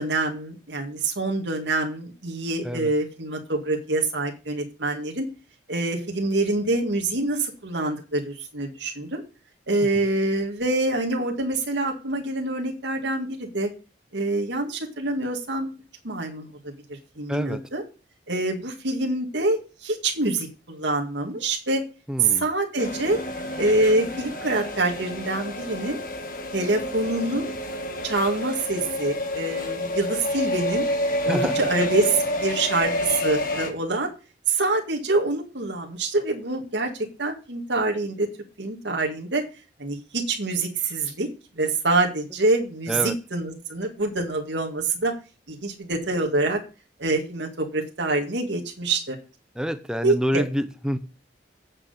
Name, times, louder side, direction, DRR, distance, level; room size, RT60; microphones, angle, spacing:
voice 1, 0.0-5.2 5.7-9.2 9.7-13.7 14.1-15.7 16.0-17.8 18.3-21.8 22.2-23.2 23.6-26.0 26.5-27.5 28.0-30.9 31.2-34.1 34.5-36.9 37.2-38.3 38.6-39.4 39.8-41.3 41.6-45.1 45.5-46.6 47.0-49.2 50.0-50.4, right 2 dB, 75° right, 1 dB, 2.0 m, -25 dB
voice 2, 17.3-17.6 22.1-22.5 31.3-31.6 42.9-43.2 49.6-51.0, equal, 5° right, 11 dB, 0.7 m, -27 dB
sound 1, 22.8-33.7, left 1 dB, 50° left, 1.6 m, -29 dB
8.9 x 6.3 x 6.6 m, 0.33 s
head